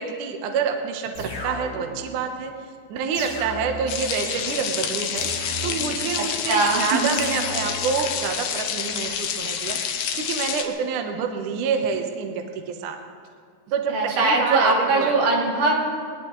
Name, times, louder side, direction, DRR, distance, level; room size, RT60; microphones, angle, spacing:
voice 1, 0.0-2.5 2.9-5.3 5.6-13.0 13.7-15.1, right 6 dB, 65° right, 4 dB, 2.2 m, -27 dB
sound 1, 1.1-2.0 3.1-4.0 5.1-6.0 7.1-8.0, left 1 dB, 30° left, 3.6 m, -34 dB
sound 2, 3.9-10.6, left 8 dB, 70° left, 2.6 m, -28 dB
voice 2, 6.5-7.1 13.9-15.7, right 3 dB, 80° right, -3 dB, 5.0 m, -21 dB
23.0 x 19.5 x 3.2 m, 2.1 s
omnidirectional pair, 4.7 m